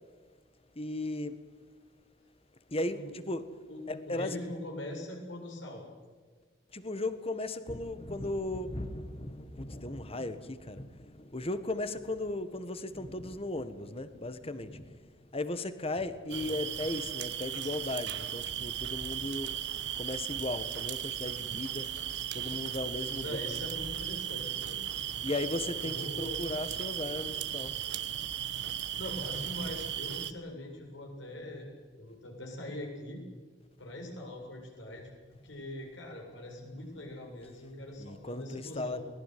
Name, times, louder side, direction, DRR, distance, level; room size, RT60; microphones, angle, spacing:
voice 1, 0.7-1.4 2.7-3.4 3.9-4.4 6.7-19.5 20.0-21.9 22.3-23.5 25.2-27.8 38.0-39.0, left 2 dB, 30° left, 1.6 m, -36 dB
voice 2, 3.7-5.8 16.3-16.6 23.2-24.8 25.8-26.4 29.0-31.7 32.0-33.2 33.8-39.0, left 1 dB, 75° left, 7.6 m, -42 dB
sound 1, 16.3-30.3, right 10 dB, 65° right, 1.3 m, -36 dB
23.0 x 19.5 x 9.4 m
head